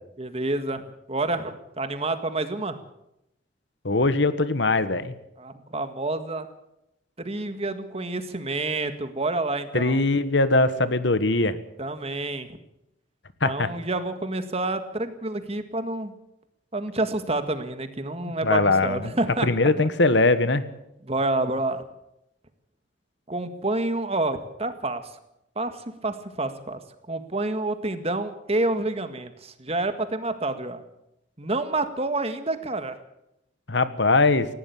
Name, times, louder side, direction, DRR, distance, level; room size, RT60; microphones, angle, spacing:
voice 1, 0.2-2.8 5.4-6.5 7.2-10.0 11.8-12.5 13.4-16.1 16.7-19.9 21.0-21.8 23.3-25.0 25.6-26.8 27.1-30.8 31.4-33.0, right 2 dB, 30° right, 9 dB, 1.8 m, -28 dB
voice 2, 3.8-5.1 9.7-11.6 13.4-13.7 18.4-19.1 19.4-20.6 33.7-34.5, left 2 dB, 65° left, 13 dB, 1.4 m, -21 dB
18.5 x 16.5 x 8.6 m, 0.84 s
head